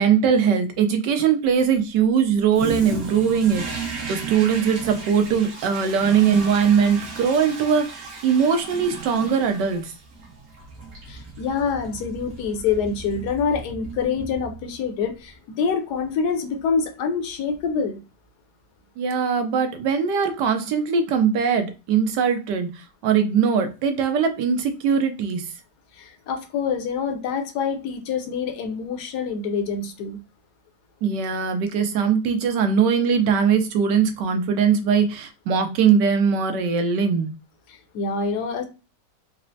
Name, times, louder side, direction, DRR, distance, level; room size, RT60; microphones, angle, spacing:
voice 1, 0.0-9.9 19.0-25.4 31.0-37.3, right 7 dB, 85° right, 1.3 m, -21 dB
Toilet flush, 2.5-14.8, right 5 dB, 60° right, 1.3 m, -35 dB
voice 2, 11.1-18.0 25.9-30.2 37.7-38.6, left 5 dB, 75° left, 1.1 m, -26 dB
4.1 x 2.0 x 2.6 m
omnidirectional pair, 1.8 m